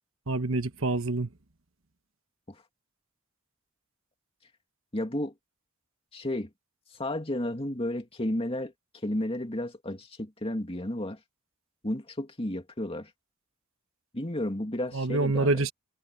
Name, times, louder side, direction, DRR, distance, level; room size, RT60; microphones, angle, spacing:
voice 1, 0.3-1.3 14.9-15.7, right 2 dB, 65° right, 1.3 m, -26 dB
voice 2, 4.9-5.3 6.1-6.5 7.0-8.7 9.0-11.2 11.8-13.1 14.1-15.7, left 1 dB, 25° left, 2.5 m, -32 dB
head